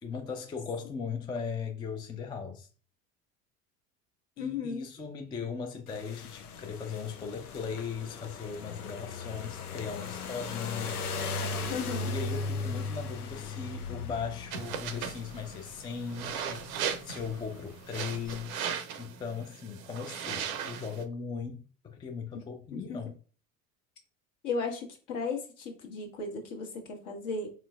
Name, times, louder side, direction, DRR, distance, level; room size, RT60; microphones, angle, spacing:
voice 1, 0.0-2.7 4.4-11.1 12.0-18.7 19.0-23.1, left 6 dB, 10° left, 0.3 m, -38 dB
voice 2, 4.4-4.9 11.7-12.2 22.7-22.8 24.4-27.5, left 4 dB, 55° left, 1.3 m, -35 dB
sound 1, 5.9-18.4, left 4 dB, 90° left, 0.5 m, -38 dB
sound 2, 14.5-21.0, right 8 dB, 70° right, 0.6 m, -38 dB
4.3 x 3.2 x 2.4 m
figure-of-eight pair, 70°, 43 cm